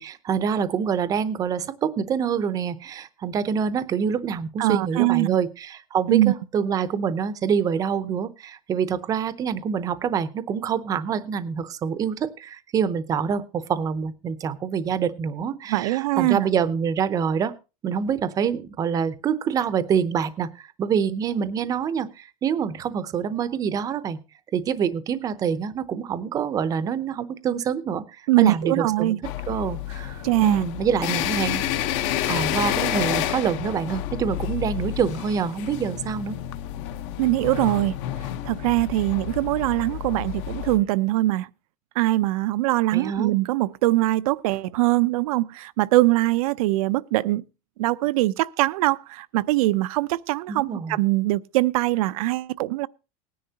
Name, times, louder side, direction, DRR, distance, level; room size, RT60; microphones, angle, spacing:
voice 1, 0.0-17.5 17.8-24.2 24.5-28.0 28.4-29.2 29.5-31.6 32.3-36.4 42.9-43.3 50.5-51.0, right 7 dB, 20° right, 0.7 m, -26 dB
voice 2, 4.6-5.4 6.1-6.3 15.7-16.5 28.3-29.2 30.2-30.6 37.2-38.0 38.4-41.5 42.0-47.4 47.8-52.9, right 18 dB, 70° right, 0.6 m, -22 dB
sound 1, 29.2-40.8, left 12 dB, 55° left, 1.0 m, -29 dB
19.0 x 10.0 x 2.8 m
supercardioid pair, 175°, 19 cm